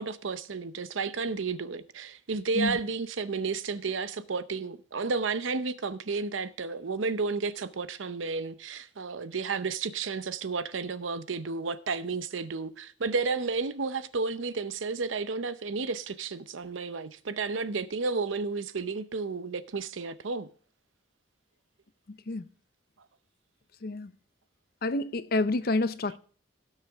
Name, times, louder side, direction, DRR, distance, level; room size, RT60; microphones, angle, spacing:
voice 1, 0.0-20.5, right 4 dB, 90° right, 0.7 m, -32 dB
voice 2, 23.8-24.1 24.8-26.2, left 2 dB, 50° left, 0.6 m, -28 dB
17.0 x 6.6 x 3.5 m
head